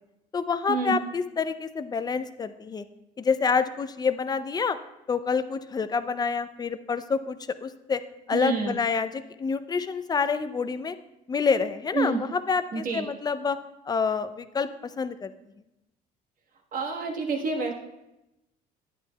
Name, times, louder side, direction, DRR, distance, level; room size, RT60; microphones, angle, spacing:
voice 1, 0.3-2.8 3.2-4.8 5.1-8.0 8.3-11.0 11.3-13.6 13.9-14.7 15.0-15.3, left 5 dB, 25° left, 12 dB, 0.4 m, -27 dB
voice 2, 8.3-8.7 11.9-12.2 12.7-13.0 16.7-17.7, right 4 dB, 55° right, 1 dB, 1.4 m, -28 dB
10.5 x 9.6 x 2.3 m, 0.92 s
cardioid pair, 110°, 17 cm